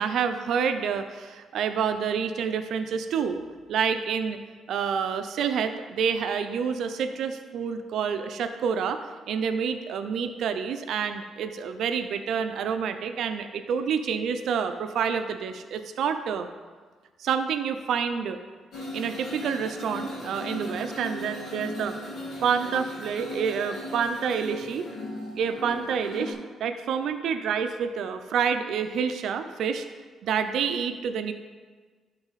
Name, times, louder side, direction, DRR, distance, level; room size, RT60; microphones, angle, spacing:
voice 1, 0.0-3.4 3.7-4.4 4.7-16.5 17.2-18.4 18.9-22.0 22.4-24.9 25.4-29.9 30.2-31.3, right 7 dB, 75° right, 8 dB, 0.5 m, -28 dB
sound 1, 18.7-26.3, left 1 dB, 65° left, 2.3 m, -37 dB
11.5 x 4.0 x 4.1 m, 1.4 s
cardioid pair, 90°, 0 cm